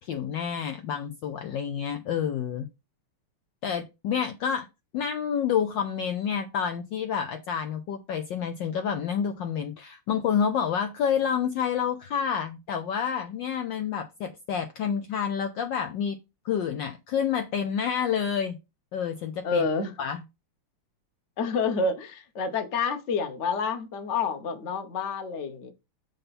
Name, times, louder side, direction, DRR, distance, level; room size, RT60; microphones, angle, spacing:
voice 1, 0.0-2.7 3.6-4.7 4.9-16.2 16.4-18.6 18.9-19.6 20.0-20.2, left 7 dB, 70° left, 1.2 m, -28 dB
voice 2, 19.4-19.9 21.4-25.7, left 4 dB, 40° left, 1.1 m, -28 dB
6.7 x 5.4 x 4.2 m
omnidirectional pair, 2.4 m